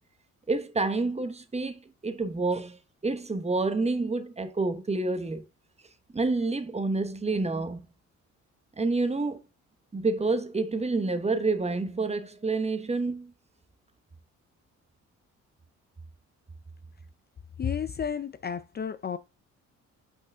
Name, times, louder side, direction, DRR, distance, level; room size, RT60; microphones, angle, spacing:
voice 1, 0.5-5.4 6.1-7.9 8.8-9.4 9.9-13.3, right 3 dB, 20° right, 1.2 m, -28 dB
voice 2, 17.6-19.2, left 7 dB, 35° left, 0.5 m, -32 dB
5.6 x 5.4 x 3.5 m
cardioid pair, 90°, 30 cm